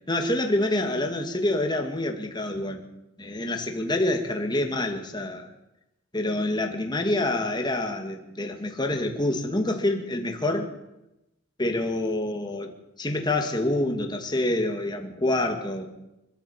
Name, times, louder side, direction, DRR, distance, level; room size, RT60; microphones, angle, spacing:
voice 1, 0.1-2.8 3.2-5.5 6.1-10.7 11.6-12.7 13.0-16.0, left 1 dB, 20° left, 3 dB, 2.1 m, -27 dB
22.0 x 14.0 x 8.7 m, 0.93 s
head